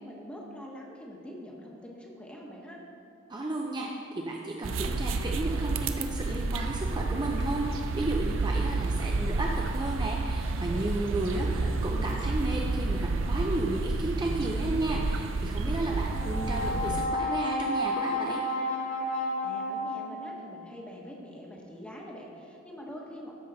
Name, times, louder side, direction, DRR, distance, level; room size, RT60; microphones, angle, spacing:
voice 1, 0.0-2.8 10.7-11.7 15.6-16.4 19.1-23.3, equal, 5° left, -2 dB, 1.1 m, -44 dB
voice 2, 3.3-18.4, right 2 dB, 25° right, -1 dB, 0.5 m, -33 dB
sound 1, 4.6-17.1, right 3 dB, 80° right, 0.5 m, -30 dB
Brass instrument, 16.1-20.5, left 1 dB, 45° left, 2.0 m, -31 dB
13.0 x 5.5 x 4.0 m, 2.5 s
head